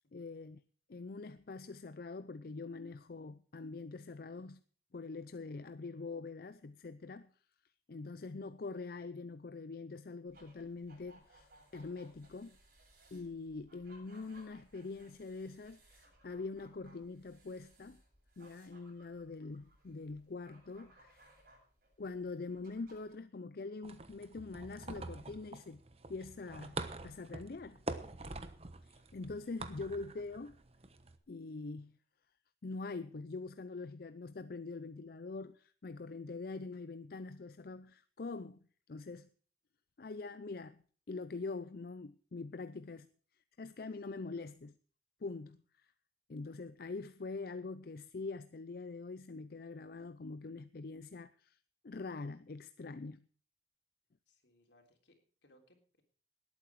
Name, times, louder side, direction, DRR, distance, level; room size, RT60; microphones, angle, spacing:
voice 1, 0.1-0.6 0.9-4.6 4.9-7.3 7.9-12.6 13.1-18.0 18.4-21.3 22.0-25.8 26.1-26.8 27.0-27.8 28.8-30.6 31.3-32.0 32.6-38.6 38.9-39.3 40.0-40.8 41.1-43.1 43.6-44.7 45.2-45.9 46.3-51.6 51.8-53.3, left 3 dB, 55° left, 0.5 m, -44 dB
sound 1, 10.3-23.2, right 1 dB, 55° right, 7.8 m, -64 dB
sound 2, 23.8-31.2, right 2 dB, 35° right, 1.1 m, -46 dB
voice 2, 54.3-56.0, left 1 dB, 80° left, 3.4 m, -69 dB
19.0 x 8.7 x 4.7 m
head